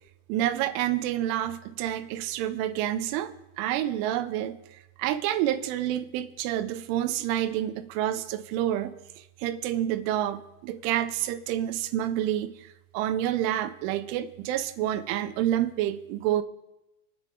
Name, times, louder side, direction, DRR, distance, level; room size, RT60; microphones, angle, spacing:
voice 1, 0.3-16.4, right 12 dB, 90° right, 11 dB, 3.2 m, -29 dB
28.0 x 9.6 x 3.7 m, 0.95 s
omnidirectional pair, 5.4 m